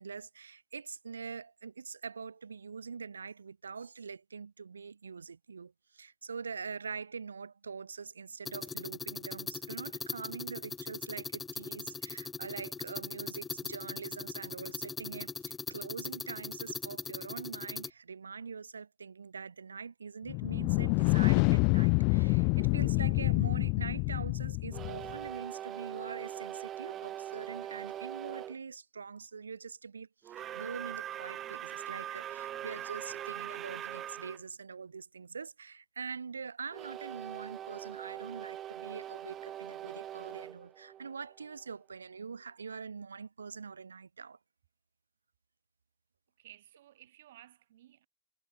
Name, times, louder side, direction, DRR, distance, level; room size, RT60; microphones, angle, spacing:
voice 1, 0.0-44.4, right 5 dB, 75° right, 2.5 m, -44 dB
sound 1, 8.4-17.9, left 5 dB, 15° left, 1.2 m, -40 dB
sound 2, 20.3-25.2, left 38 dB, 45° left, 1.3 m, -27 dB
sound 3, 24.7-28.6 30.2-34.4 36.7-41.6, right 11 dB, 30° right, 1.4 m, -42 dB
voice 2, 46.4-48.1, right 13 dB, 55° right, 6.2 m, -56 dB
figure-of-eight pair, 90°, 0 cm